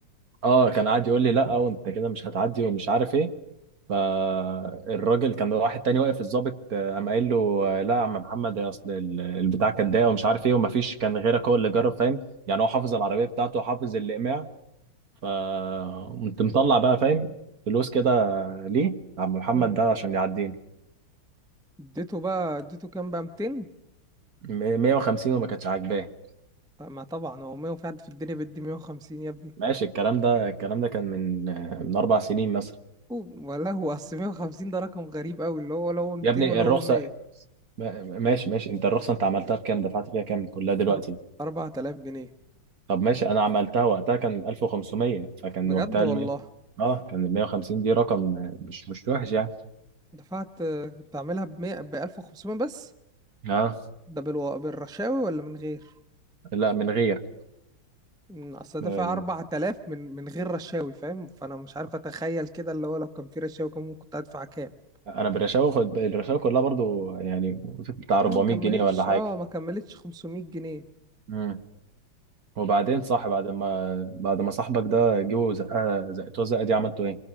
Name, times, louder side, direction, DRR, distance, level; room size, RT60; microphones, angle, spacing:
voice 1, 0.4-3.3 3.9-12.2 12.5-14.5 15.2-17.4 17.7-20.5 24.4-26.1 29.6-32.7 36.2-37.0 37.8-41.2 42.9-46.3 46.8-49.5 53.4-53.8 56.5-57.2 58.8-59.2 65.1-69.2 71.3-71.6 72.6-77.2, right 5 dB, 45° right, 9 dB, 1.8 m, -25 dB
voice 2, 21.8-23.7 26.8-29.5 33.1-37.1 40.9-41.0 41.4-42.3 45.6-46.4 50.1-52.9 54.1-55.9 58.3-64.7 68.2-70.8, right 1 dB, 5° right, 10 dB, 0.7 m, -32 dB
26.0 x 25.5 x 6.2 m, 0.82 s
omnidirectional pair, 2.3 m